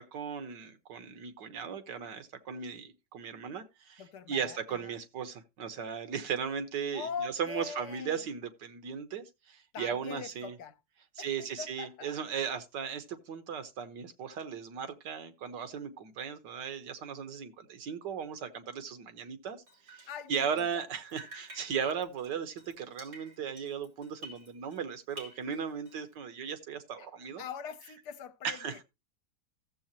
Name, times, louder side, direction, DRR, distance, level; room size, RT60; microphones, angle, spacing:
voice 1, 0.0-4.0 4.3-10.6 11.2-19.6 19.8-27.4 28.4-28.8, right 7 dB, 85° right, 1.7 m, -37 dB
voice 2, 4.0-4.9 6.9-8.2 9.7-10.7 11.2-12.1 20.1-20.5 20.7-20.8 27.0-27.1 27.4-28.8, left 6 dB, 70° left, 1.4 m, -42 dB
Drip, 19.7-20.8 21.1-24.8 25.1-26.1, right 1 dB, 65° right, 3.4 m, -51 dB
15.0 x 7.4 x 2.9 m
omnidirectional pair, 1.8 m